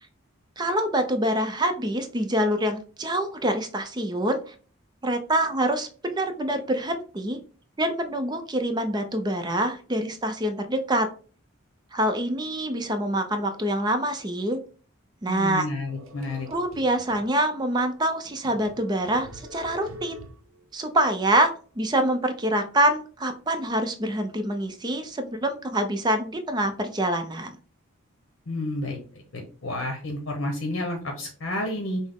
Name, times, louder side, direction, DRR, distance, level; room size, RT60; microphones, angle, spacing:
voice 1, 0.6-4.5 5.0-7.4 7.8-11.1 11.9-14.6 15.2-15.6 16.5-20.3 20.7-27.6, right 1 dB, 20° right, 7 dB, 0.5 m, -25 dB
voice 2, 15.3-16.5 28.5-29.0 29.3-32.0, left 2 dB, 65° left, 2 dB, 0.8 m, -30 dB
sound 1, 15.9-17.3 17.8-17.9 18.2-20.7, equal, 75° right, 0.6 m, -45 dB
5.8 x 2.0 x 3.6 m, 0.41 s
head